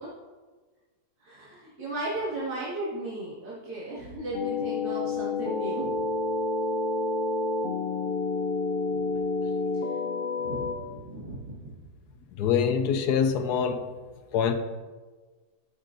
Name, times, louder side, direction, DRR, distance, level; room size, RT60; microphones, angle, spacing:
voice 1, 1.3-5.9 8.9-9.0 10.4-11.6, right 2 dB, 70° right, -9 dB, 2.6 m, -35 dB
sound 1, 4.3-10.8, left 3 dB, 50° left, 0.7 m, -29 dB
voice 2, 12.3-13.8 14.3-14.5, left 7 dB, 80° left, 8 dB, 1.3 m, -24 dB
11.5 x 8.2 x 2.6 m, 1.3 s
omnidirectional pair, 1.7 m